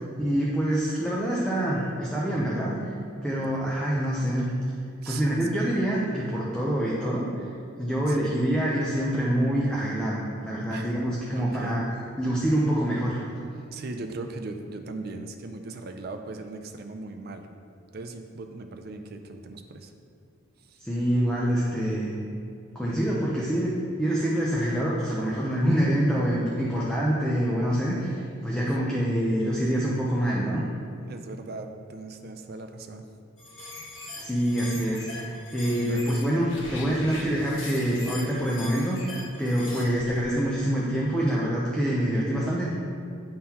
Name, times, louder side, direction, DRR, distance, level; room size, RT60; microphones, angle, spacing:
voice 1, 0.2-2.8 3.2-4.5 5.1-7.5 7.8-11.8 12.2-13.3 20.8-22.1 22.7-23.7 24.0-30.6 34.2-39.0 39.4-42.7, equal, 5° left, -6 dB, 0.5 m, -26 dB
voice 2, 3.4-3.8 5.0-5.3 5.5-5.6 8.1-8.3 10.7-10.9 11.4-11.8 13.7-17.5 17.9-19.9 20.6-20.8 28.6-29.0 31.1-33.1 35.8-36.2 39.7-39.9, right 3 dB, 50° right, 6 dB, 0.4 m, -39 dB
sound 1, 33.4-40.2, left 2 dB, 75° left, 1.3 m, -41 dB
9.6 x 3.8 x 2.9 m, 2.4 s
head